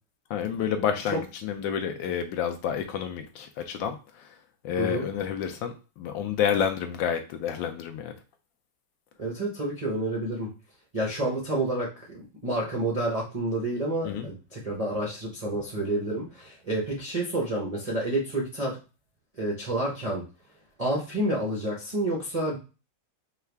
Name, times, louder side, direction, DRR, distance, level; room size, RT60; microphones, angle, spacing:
voice 1, 0.3-4.3 4.6-8.1 14.0-14.3, left 8 dB, 75° left, 6 dB, 1.2 m, -29 dB
voice 2, 9.2-10.5 10.9-18.8 19.4-20.2 20.8-22.6, right 1 dB, 70° right, -4 dB, 0.3 m, -29 dB
4.5 x 2.4 x 3.3 m, 0.32 s
omnidirectional pair, 2.3 m